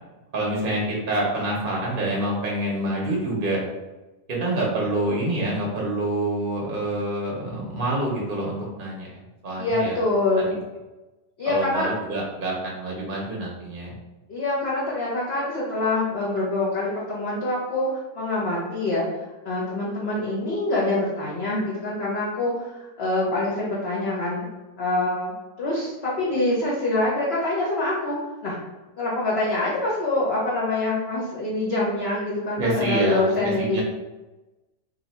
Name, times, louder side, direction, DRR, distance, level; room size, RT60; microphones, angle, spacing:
voice 1, 0.3-3.6 4.3-9.1 9.4-9.9 10.4-10.5 11.5-13.9 32.6-33.8, right 1 dB, 45° right, -3 dB, 0.7 m, -26 dB
voice 2, 9.6-10.5 11.4-11.9 14.3-17.9 18.1-24.5 24.8-28.2 28.4-28.6 29.0-33.8, left 2 dB, 55° left, -6 dB, 0.7 m, -25 dB
2.7 x 2.4 x 4.1 m, 1.1 s
omnidirectional pair, 1.9 m